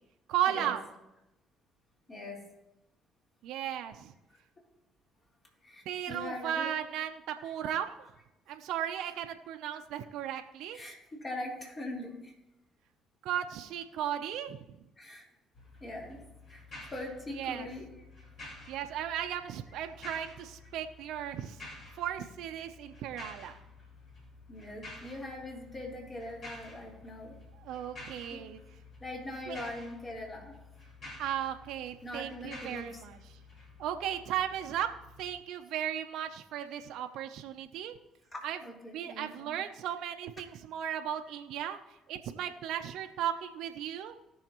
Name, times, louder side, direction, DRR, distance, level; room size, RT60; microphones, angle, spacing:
voice 1, 0.3-0.8 3.4-4.1 5.9-8.1 8.5-10.8 13.2-14.6 17.4-17.7 18.7-21.6 21.9-23.5 27.6-28.6 29.5-29.6 31.2-33.4 33.8-34.9 35.2-38.0 38.4-38.6 38.9-41.8 42.1-44.1, right 10 dB, 70° right, 6 dB, 0.7 m, -35 dB
voice 2, 2.1-2.4 4.3-4.4 5.6-6.7 7.4-7.5 10.7-12.3 15.0-15.3 15.8-16.2 16.5-17.9 24.5-27.4 28.3-28.4 29.0-30.6 32.0-33.0 38.6-39.6, left 1 dB, 30° left, -3 dB, 3.9 m, -42 dB
sound 1, 15.5-35.3, left 2 dB, 50° left, 3.5 m, -51 dB
18.5 x 6.4 x 3.1 m, 0.92 s
hypercardioid pair, 55°, 0 cm